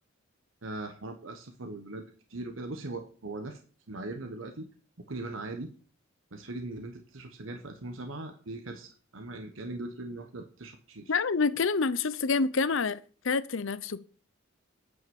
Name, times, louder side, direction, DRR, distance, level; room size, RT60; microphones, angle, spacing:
voice 1, 0.6-3.6 3.9-4.7 5.1-5.7 6.3-11.2, right 2 dB, 70° right, 1.1 m, -40 dB
voice 2, 11.1-13.0 13.2-14.1, left 4 dB, 65° left, 0.7 m, -27 dB
9.6 x 5.7 x 7.0 m
head